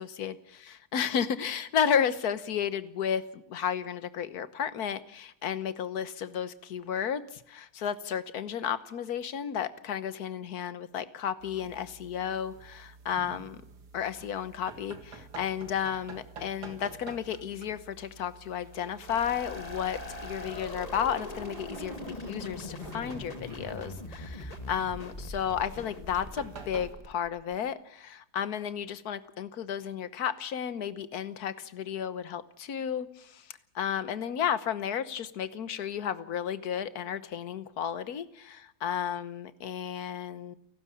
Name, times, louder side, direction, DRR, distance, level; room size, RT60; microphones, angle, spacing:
voice 1, 0.0-13.6 13.9-33.4 33.7-40.5, left 8 dB, 70° left, 14 dB, 1.6 m, -33 dB
sound 1, 11.4-26.9, right 4 dB, 90° right, 2.6 m, -49 dB
sound 2, 19.1-27.5, left 2 dB, 25° left, 1.9 m, -41 dB
29.0 x 12.5 x 8.6 m, 0.75 s
omnidirectional pair, 1.7 m